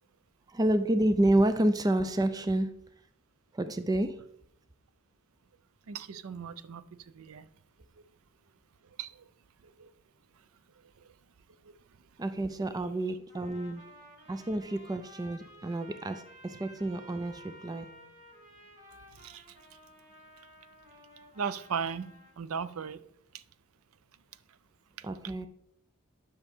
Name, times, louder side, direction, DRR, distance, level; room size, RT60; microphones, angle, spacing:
voice 1, 0.5-2.8 3.5-4.2 12.2-13.9 14.3-17.9 25.0-25.5, right 1 dB, 20° right, 0.4 m, -29 dB
voice 2, 5.9-7.5 9.0-9.2 9.8-9.9 19.2-19.4 21.4-22.1 22.4-23.0 25.0-25.1, right 6 dB, 70° right, 0.5 m, -37 dB
Trumpet, 13.3-22.4, equal, 35° right, 2.1 m, -54 dB
10.5 x 5.8 x 3.6 m
head